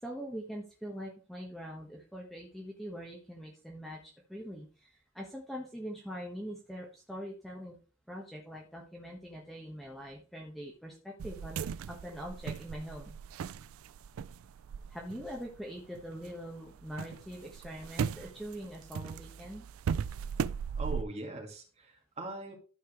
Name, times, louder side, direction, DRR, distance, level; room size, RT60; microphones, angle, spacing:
voice 1, 0.0-7.8 8.1-13.2 14.9-19.7, equal, ahead, -2 dB, 1.3 m, -43 dB
sound 1, 11.2-16.3 16.7-21.0, right 7 dB, 85° right, 0.3 m, -38 dB
voice 2, 20.8-22.5, right 1 dB, 30° right, 0 dB, 2.5 m, -41 dB
13.0 x 4.6 x 4.5 m, 0.37 s
head